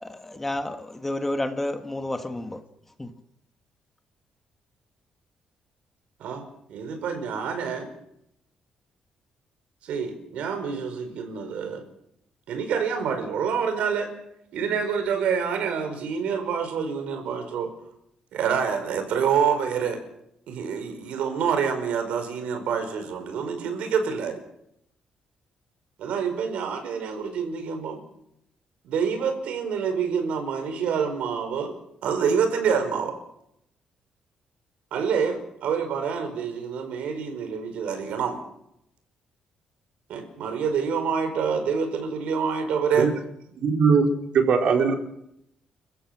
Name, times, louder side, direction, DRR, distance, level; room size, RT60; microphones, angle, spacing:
voice 1, 0.0-2.6 3.0-3.1, left 1 dB, 10° left, 1.6 m, -30 dB
voice 2, 6.7-7.9 9.8-11.8 12.5-14.1 14.5-17.7 18.3-20.0 20.5-24.4 26.0-28.0 28.8-31.7 32.0-33.2 34.9-38.4 40.1-43.1, right 6 dB, 80° right, 5.2 m, -27 dB
voice 3, 43.6-44.0 44.3-44.9, right 6 dB, 60° right, 4.4 m, -19 dB
29.5 x 15.5 x 6.0 m
cardioid pair, 140°, 2 cm